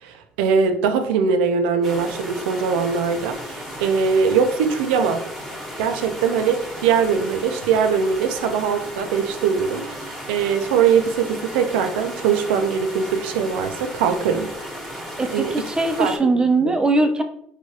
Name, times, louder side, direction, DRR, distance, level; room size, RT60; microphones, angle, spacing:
voice 1, 0.0-5.2 5.8-14.5 15.3-15.5 16.0-17.1, right 6 dB, 80° right, 6 dB, 0.3 m, -21 dB
sound 1, 1.8-16.2, equal, 5° left, 1.1 m, -35 dB
voice 2, 15.2-17.2, right 2 dB, 15° right, 6 dB, 0.4 m, -20 dB
3.2 x 2.2 x 2.7 m, 0.67 s
hypercardioid pair, 65°, 5 cm